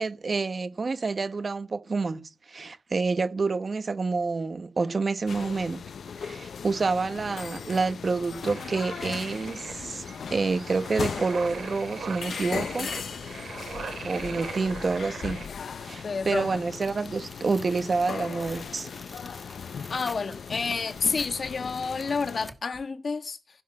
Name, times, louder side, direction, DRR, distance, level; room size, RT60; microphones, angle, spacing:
voice 1, 0.0-5.8 6.2-10.0 10.3-12.9 14.0-15.5 15.8-18.9, right 4 dB, 45° right, 1.1 m, -28 dB
sound 1, 5.3-22.5, left 6 dB, 80° left, 0.7 m, -38 dB
sound 2, 8.5-15.5, right 6 dB, 75° right, 2.2 m, -41 dB
voice 2, 16.0-16.5 19.9-23.4, left 4 dB, 50° left, 1.7 m, -29 dB
Tearing, 16.7-22.9, equal, 5° right, 1.4 m, -48 dB
16.0 x 7.5 x 8.6 m
wide cardioid pair, 130°, 0 cm